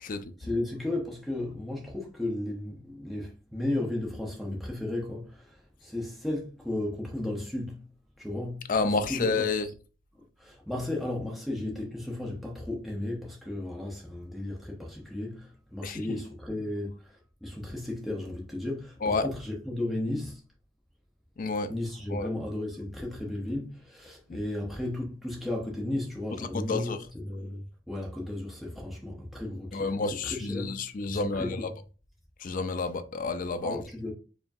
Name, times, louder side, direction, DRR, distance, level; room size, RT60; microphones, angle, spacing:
voice 1, 0.1-7.9 8.2-9.3 10.1-20.4 21.7-31.7 33.6-34.1, left 1 dB, ahead, 0.8 m, -35 dB
voice 2, 8.7-9.7 15.8-16.0 19.0-19.3 21.4-21.7 22.1-22.3 24.3-24.4 26.5-27.0 29.7-31.6 32.4-33.8, left 3 dB, 40° left, 0.4 m, -29 dB
4.7 x 2.9 x 2.6 m
head